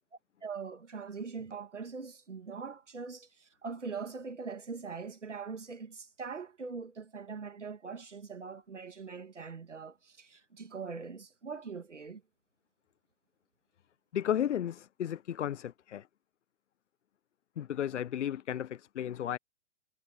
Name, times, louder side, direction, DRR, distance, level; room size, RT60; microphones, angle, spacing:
voice 1, 0.4-12.2, right 5 dB, 90° right, 2.3 m, -42 dB
voice 2, 14.1-16.0 17.6-19.4, left 10 dB, 75° left, 0.7 m, -33 dB
hypercardioid pair, 115°, 35 cm